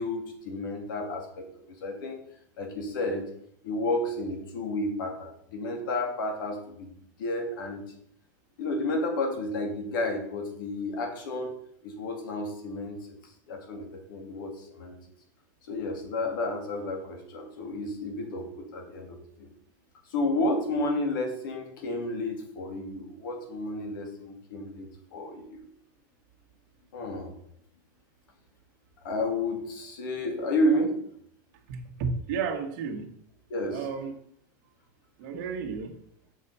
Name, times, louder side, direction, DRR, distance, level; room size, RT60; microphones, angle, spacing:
voice 1, 0.0-2.2 2.6-3.3 3.6-6.9 7.2-7.9 8.6-11.6 11.8-15.0 15.7-19.5 20.1-25.7 26.9-27.4 29.0-31.0 33.5-33.9, left 1 dB, 80° left, 2.5 m, -31 dB
voice 2, 31.7-33.1 33.7-34.1 35.2-36.0, right 5 dB, 55° right, 1.5 m, -32 dB
7.6 x 5.7 x 5.5 m
supercardioid pair, 165°, 11 cm